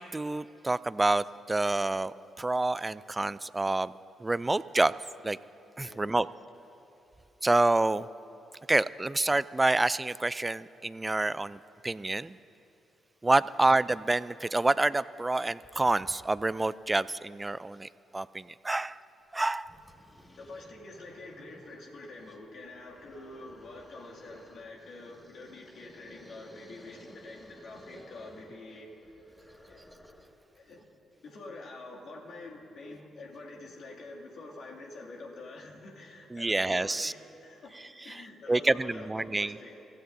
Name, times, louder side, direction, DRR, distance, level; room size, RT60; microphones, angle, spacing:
voice 1, 0.0-3.9 4.2-4.9 5.2-5.4 5.8-6.3 7.4-8.1 8.7-12.4 13.2-19.0 19.3-19.7 36.3-37.1 37.7-39.6, right 2 dB, 20° right, 18 dB, 0.4 m, -28 dB
sound 1, 19.2-19.3 19.6-30.4, equal, 20° left, 2.0 m, -55 dB
voice 2, 20.4-28.9 29.6-29.8 30.5-30.9 31.2-37.7 38.0-39.8, left 2 dB, 60° left, -3 dB, 2.4 m, -46 dB
24.0 x 16.0 x 2.7 m, 2.9 s
hypercardioid pair, 45°, 0 cm